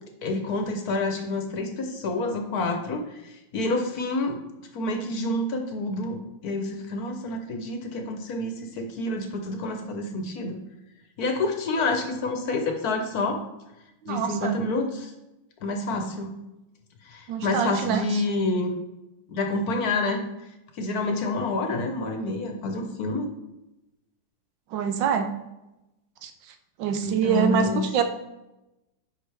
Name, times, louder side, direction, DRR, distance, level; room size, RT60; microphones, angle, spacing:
voice 1, 0.2-4.4 4.7-6.2 6.4-10.6 11.2-13.4 14.1-15.1 15.6-16.3 17.0-18.8 19.3-20.2 20.7-23.3 27.0-27.9, left 2 dB, 60° left, 4 dB, 1.2 m, -28 dB
voice 2, 14.0-14.6 17.3-18.2 24.7-25.3 26.2-26.3 26.8-28.0, right 7 dB, 80° right, 8 dB, 1.4 m, -25 dB
9.9 x 4.5 x 3.4 m, 0.95 s
omnidirectional pair, 2.0 m